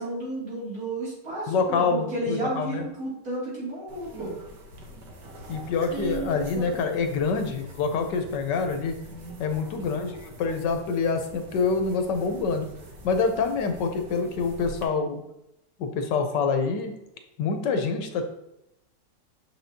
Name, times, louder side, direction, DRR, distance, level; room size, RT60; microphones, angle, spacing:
voice 1, 0.0-4.3 9.1-9.4, right 1 dB, 55° right, -7 dB, 3.2 m, -32 dB
voice 2, 1.5-2.9 5.5-9.0 9.4-12.7 13.0-15.2 15.8-16.9 17.4-18.2, left 4 dB, 85° left, 6 dB, 1.5 m, -26 dB
sound 1, 3.9-14.8, right 2 dB, 75° right, 1.7 m, -42 dB
6.7 x 6.0 x 2.8 m, 0.84 s
omnidirectional pair, 1.9 m